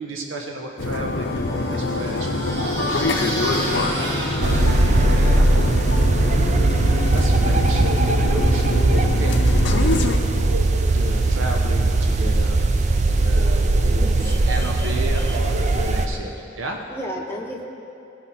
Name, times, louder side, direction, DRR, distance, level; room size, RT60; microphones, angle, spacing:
voice 1, 0.0-9.5 9.8-10.5 10.9-12.7 13.2-16.8, right 2 dB, 90° right, 1 dB, 0.9 m, -33 dB
sound 1, 0.8-10.2, left 2 dB, 65° left, 0.7 m, -25 dB
sound 2, 1.1-5.7, right 1 dB, 60° right, 1.9 m, -31 dB
sound 3, 4.4-16.1, right 2 dB, 35° right, 0.4 m, -19 dB
voice 2, 13.9-15.0 15.3-15.4 16.9-17.6, equal, 10° left, -2 dB, 0.8 m, -34 dB
15.5 x 5.9 x 4.2 m, 2.6 s
head